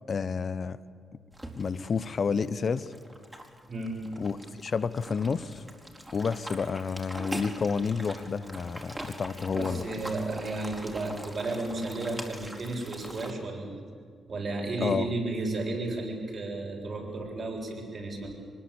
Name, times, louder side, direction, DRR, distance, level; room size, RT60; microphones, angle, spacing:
voice 1, 0.1-0.8 1.5-2.9 4.2-4.4 4.6-5.6 6.1-9.9 14.8-15.1, left 5 dB, 50° left, 15 dB, 1.0 m, -30 dB
sound 1, 1.3-13.3, right 1 dB, 15° right, 4.5 m, -43 dB
voice 2, 3.7-4.0 9.5-13.8 14.3-18.3, right 2 dB, 50° right, 1 dB, 7.3 m, -33 dB
24.0 x 21.0 x 8.8 m, 2.1 s
hypercardioid pair, 40°, 0 cm